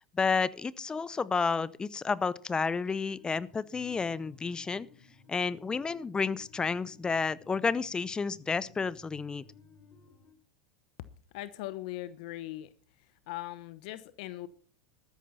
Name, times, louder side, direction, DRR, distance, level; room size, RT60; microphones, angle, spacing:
voice 1, 0.1-4.9 5.3-9.4, left 5 dB, 20° left, 20 dB, 0.7 m, -31 dB
sound 1, 2.9-10.3, left 6 dB, 40° left, 4.1 m, -57 dB
voice 2, 11.3-12.7 13.3-14.5, left 16 dB, 65° left, 15 dB, 1.0 m, -40 dB
14.0 x 13.5 x 4.2 m, 0.42 s
hypercardioid pair, 95°, 4 cm